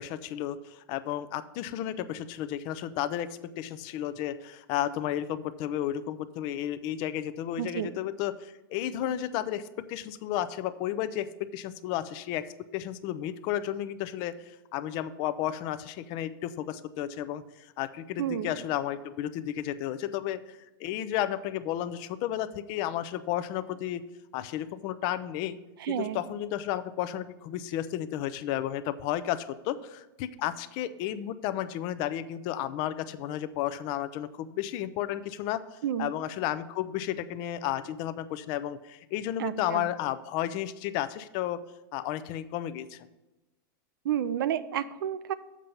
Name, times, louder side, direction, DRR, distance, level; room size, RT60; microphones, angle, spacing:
voice 1, 0.0-24.0 24.3-25.6 25.9-41.6 41.9-43.1, left 12 dB, 40° left, 14 dB, 0.5 m, -33 dB
voice 2, 7.6-7.9 18.2-18.6 25.8-26.2 35.8-36.1 39.4-39.9 44.0-45.3, right 10 dB, 80° right, 13 dB, 0.5 m, -31 dB
7.4 x 5.3 x 7.0 m, 1.0 s
supercardioid pair, 150°, 11 cm